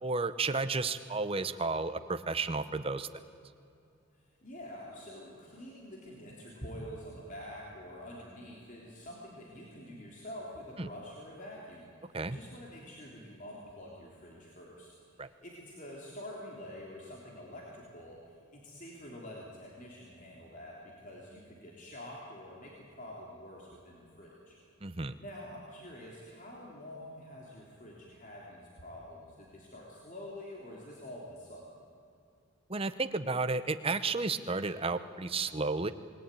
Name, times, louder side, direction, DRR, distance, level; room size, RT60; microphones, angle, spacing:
voice 1, 0.0-3.1 10.8-10.9 12.1-12.4 15.2-15.3 24.8-25.2 32.7-35.9, right 3 dB, 25° right, 10 dB, 0.8 m, -32 dB
voice 2, 4.4-18.2 18.5-24.6 24.9-31.7, left 1 dB, 35° left, -3 dB, 3.4 m, -47 dB
27.0 x 20.5 x 9.2 m, 2.5 s
head